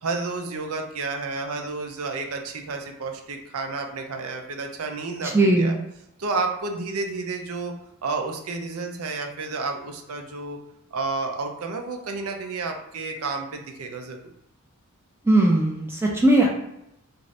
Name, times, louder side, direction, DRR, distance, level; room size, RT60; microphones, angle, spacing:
voice 1, 0.0-5.8 6.2-7.7 8.0-10.6 10.9-14.3, right 3 dB, 75° right, 4 dB, 0.5 m, -31 dB
voice 2, 5.2-5.7 15.2-16.5, right 1 dB, 10° right, -1 dB, 0.4 m, -19 dB
2.6 x 2.5 x 3.2 m, 0.81 s
head